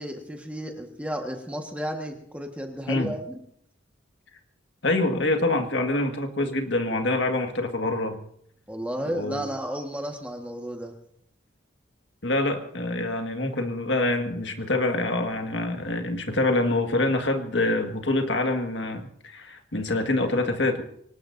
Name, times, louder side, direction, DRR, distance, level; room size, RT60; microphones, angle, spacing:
voice 1, 0.0-3.4 8.7-10.9, equal, 5° right, 3 dB, 1.5 m, -33 dB
voice 2, 4.8-8.2 9.1-9.5 12.2-20.8, left 2 dB, 65° left, 5 dB, 1.8 m, -26 dB
25.0 x 19.0 x 2.7 m, 0.67 s
head